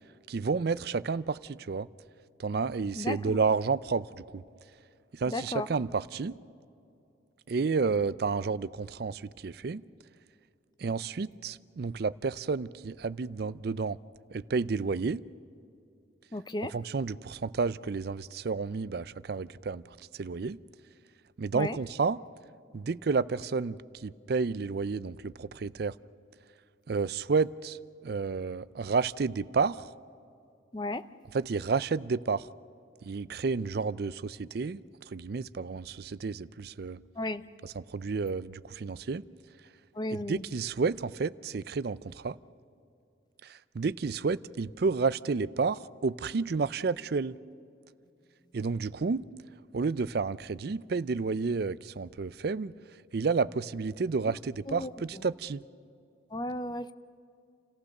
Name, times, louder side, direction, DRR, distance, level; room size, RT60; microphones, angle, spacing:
voice 1, 0.3-1.9 2.4-4.4 5.1-6.4 7.5-9.8 10.8-14.0 14.3-15.2 16.7-20.6 21.4-22.2 22.7-26.0 26.9-29.9 31.3-32.5 33.0-37.0 37.6-39.3 40.1-42.4 43.4-47.4 48.5-49.3 49.7-52.7 53.1-55.6, right 4 dB, 55° right, 0.4 m, -31 dB
voice 2, 3.0-3.4 5.3-5.7 16.3-16.7 21.5-21.8 30.7-31.0 37.2-37.4 39.9-40.4 54.7-54.9 56.3-56.9, left 1 dB, 20° left, 0.5 m, -34 dB
28.5 x 15.0 x 6.5 m
head